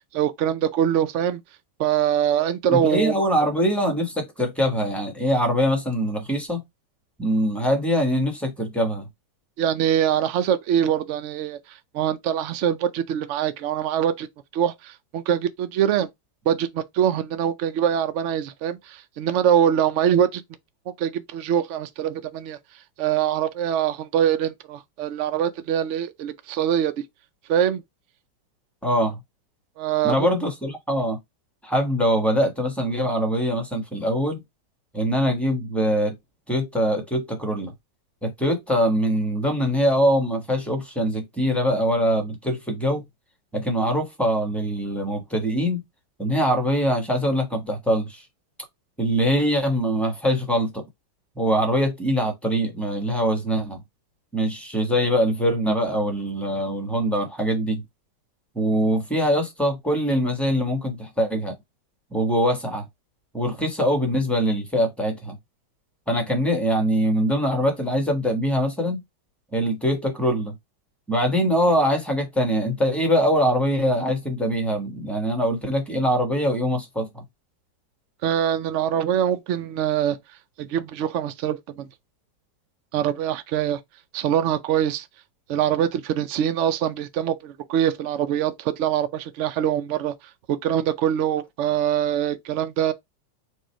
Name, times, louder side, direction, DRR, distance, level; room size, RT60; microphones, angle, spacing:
voice 1, 0.1-1.4 1.8-3.3 9.6-14.3 14.5-16.1 16.5-20.4 21.0-22.6 23.0-27.0 27.5-27.8 29.8-30.3 78.2-80.2 80.6-81.9 82.9-83.8 84.1-85.1 85.5-90.1 90.5-92.9, right 10 dB, 75° right, 0.6 m, -23 dB
voice 2, 2.7-6.6 7.2-9.1 28.8-29.2 30.0-31.2 31.6-34.4 34.9-36.1 36.5-37.7 38.2-43.0 43.5-45.8 46.2-48.2 49.0-50.8 51.4-53.8 54.3-57.8 58.5-61.5 62.1-62.8 63.3-65.3 66.1-69.0 69.5-70.5 71.1-77.2, equal, ahead, 1.1 m, -23 dB
4.5 x 2.4 x 4.4 m
omnidirectional pair, 1.8 m